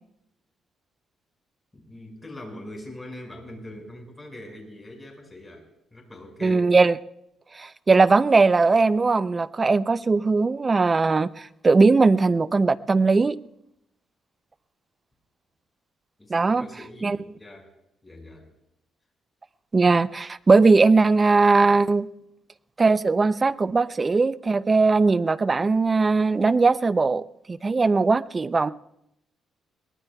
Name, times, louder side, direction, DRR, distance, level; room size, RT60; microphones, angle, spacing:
voice 1, 1.7-5.6 5.9-6.7 16.2-17.7 18.0-18.5, left 1 dB, 15° left, 1 dB, 5.5 m, -42 dB
voice 2, 6.4-7.0 7.5-13.4 16.3-16.7 17.0-17.2 19.7-22.1 22.8-28.7, right 3 dB, 30° right, 16 dB, 0.5 m, -19 dB
22.5 x 19.0 x 2.3 m, 0.81 s
cardioid pair, 90°, 0 cm